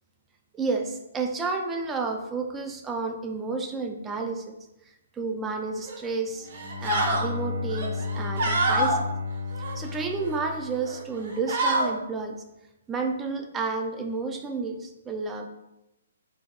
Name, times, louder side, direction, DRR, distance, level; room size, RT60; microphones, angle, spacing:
voice 1, 0.5-4.6 5.1-6.5 6.8-9.0 9.8-12.4 12.9-15.5, right 4 dB, 10° right, 4 dB, 0.3 m, -31 dB
sound 1, 5.8-6.1 6.5-7.3 7.7-9.0 9.5-10.4 10.8-11.0 11.3-11.9, right 2 dB, 50° right, 0.8 m, -27 dB
Bowed string instrument, 6.3-11.3, left 4 dB, 85° right, 1.4 m, -33 dB
4.0 x 2.3 x 3.6 m, 0.91 s
hypercardioid pair, 160°, 0 cm